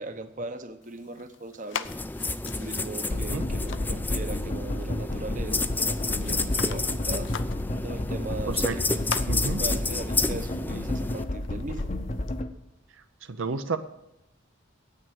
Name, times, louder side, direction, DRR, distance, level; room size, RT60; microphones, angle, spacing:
voice 1, 0.0-1.9 2.4-7.3 7.8-9.0 9.6-11.9, right 2 dB, 40° right, 9 dB, 0.9 m, -38 dB
sound 1, 0.8-12.4, left 7 dB, 65° left, 0.6 m, -43 dB
sound 2, 1.8-11.2, left 3 dB, 10° left, 0.4 m, -31 dB
sound 3, 3.1-12.5, left 1 dB, 35° left, 0.8 m, -31 dB
voice 2, 8.5-8.8 9.3-9.6 13.2-13.8, right 4 dB, 70° right, 8 dB, 0.7 m, -30 dB
9.5 x 8.8 x 8.7 m, 0.87 s
head